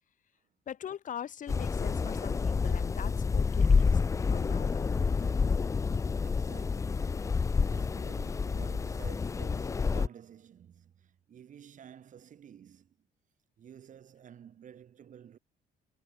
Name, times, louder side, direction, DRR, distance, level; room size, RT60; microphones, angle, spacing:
voice 1, 0.7-4.0 4.3-5.3 8.5-8.6, left 9 dB, 50° left, 2.4 m, -42 dB
sound 1, 1.5-10.1, left 5 dB, 20° left, 0.4 m, -28 dB
voice 2, 6.2-13.0 13.6-15.4, right 9 dB, 50° right, 4.0 m, -52 dB
cardioid pair, 110°, 17 cm